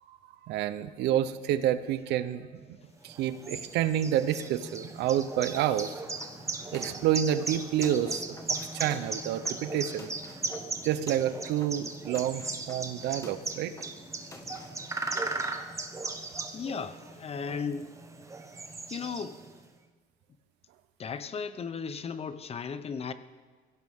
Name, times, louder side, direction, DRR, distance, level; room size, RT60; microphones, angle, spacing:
voice 1, 0.4-2.5 3.0-6.0 6.7-8.2 8.5-10.1 10.8-13.7, right 11 dB, 85° right, 13 dB, 0.8 m, -29 dB
sound 1, 3.0-19.6, right 3 dB, 15° right, 1.2 m, -37 dB
sound 2, 6.2-14.9, left 2 dB, 20° left, 1.7 m, -50 dB
voice 2, 16.5-17.9 18.9-19.4 21.0-23.1, left 6 dB, 35° left, 12 dB, 0.8 m, -35 dB
23.0 x 16.5 x 3.7 m, 1.5 s
cardioid pair, 110°, 17 cm